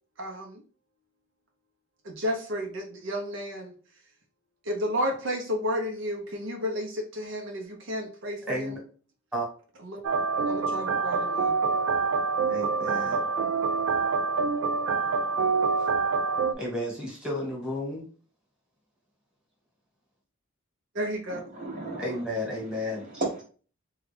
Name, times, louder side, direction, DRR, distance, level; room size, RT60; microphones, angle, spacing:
voice 1, 0.2-0.6 2.0-3.7 4.7-8.7 9.8-10.0 10.5-11.5 20.9-21.4, equal, 70° right, 0.8 m, -32 dB
voice 2, 8.5-8.8 9.3-9.5 12.5-13.3 15.8-15.9 16.6-18.1 22.0-23.0, left 1 dB, 5° right, 1.3 m, -32 dB
sound 1, 10.0-16.5, right 4 dB, 90° right, 0.3 m, -26 dB
voice 3, 21.3-23.4, right 2 dB, 40° right, 0.9 m, -36 dB
3.7 x 2.3 x 3.3 m
head